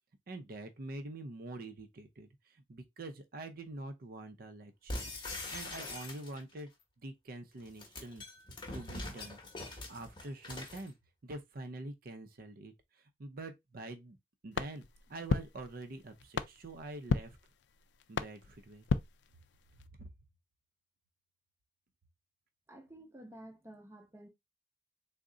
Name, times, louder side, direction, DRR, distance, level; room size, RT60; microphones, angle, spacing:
voice 1, 0.3-5.1 5.5-6.7 7.0-8.2 8.7-10.9 11.2-14.2 14.4-14.8 15.1-17.4 18.1-18.9 19.9-20.1, right 2 dB, 55° right, 0.5 m, -46 dB
sound 1, 4.9-6.6 7.6-10.9, left 2 dB, 25° left, 0.9 m, -43 dB
sound 2, 14.5-19.9, left 5 dB, 65° left, 0.4 m, -37 dB
voice 2, 22.7-24.3, right 1 dB, 15° right, 0.7 m, -52 dB
3.6 x 2.1 x 3.8 m
head